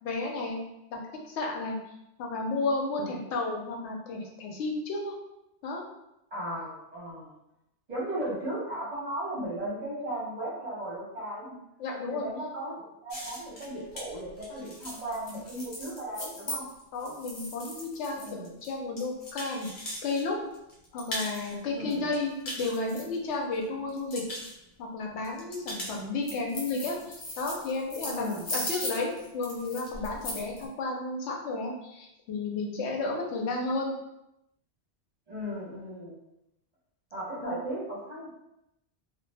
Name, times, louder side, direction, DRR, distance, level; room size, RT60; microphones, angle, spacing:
voice 1, 0.0-0.6 0.9-1.0 1.3-1.8 2.2-5.1 5.6-5.8 11.8-12.3 16.9-19.7 20.0-20.4 20.9-24.3 24.8-34.0 37.4-37.6, left 3 dB, 85° left, 0 dB, 0.9 m, -32 dB
voice 2, 6.3-7.3 7.9-11.6 12.1-16.7 18.1-18.5 21.7-22.1 28.1-28.5 35.3-36.2 37.1-38.3, right 1 dB, 40° right, -8 dB, 0.8 m, -36 dB
sound 1, 13.1-20.2 20.5-21.5 21.9-23.6 23.9-24.5 25.2-30.6, left 1 dB, 55° left, 0.7 m, -38 dB
2.1 x 2.0 x 3.3 m, 0.87 s
omnidirectional pair, 1.1 m